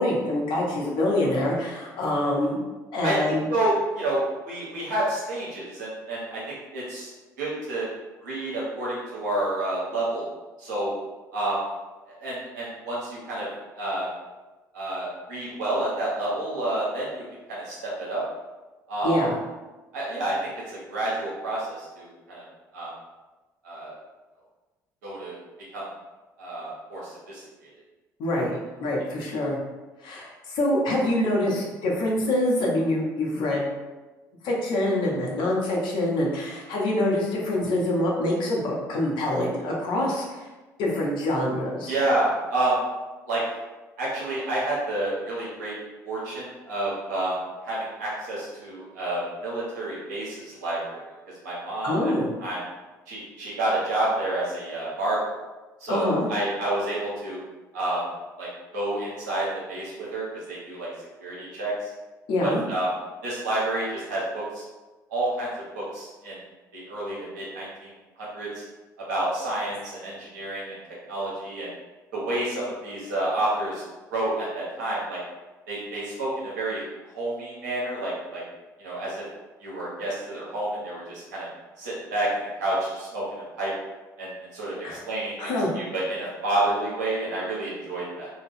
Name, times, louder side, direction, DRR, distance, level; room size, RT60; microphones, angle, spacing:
voice 1, 0.0-2.6 2.9-3.5 19.0-19.3 28.2-29.6 30.0-33.6 34.4-40.5 40.8-41.9 51.8-52.3 55.9-56.3 62.3-62.6 84.8-85.0 85.4-85.7, left 1 dB, 55° left, -3 dB, 0.8 m, -25 dB
voice 2, 3.0-7.1 7.4-7.9 8.2-10.3 10.6-10.9 11.3-11.6 12.2-13.5 13.8-14.1 14.7-18.2 18.9-19.2 19.9-22.4 22.7-22.9 23.6-23.9 25.0-25.4 25.7-25.8 26.4-27.7 29.2-29.3 41.9-42.8 43.3-43.4 44.0-45.8 46.0-47.3 47.6-51.0 51.4-52.1 52.4-52.6 53.1-55.3 55.8-57.4 57.7-58.0 58.4-58.5 58.7-60.9 61.2-61.9 62.4-62.9 63.2-64.6 65.1-65.5 65.7-66.4 66.7-67.9 68.2-68.6 69.1-70.7 71.1-71.7 72.1-73.8 74.1-75.2 75.7-76.8 77.1-78.4 78.8-79.2 79.6-81.5 81.8-83.7 84.2-88.3, right 1 dB, 75° right, -7 dB, 1.1 m, -29 dB
2.7 x 2.2 x 3.4 m, 1.2 s
figure-of-eight pair, 55°, 10 cm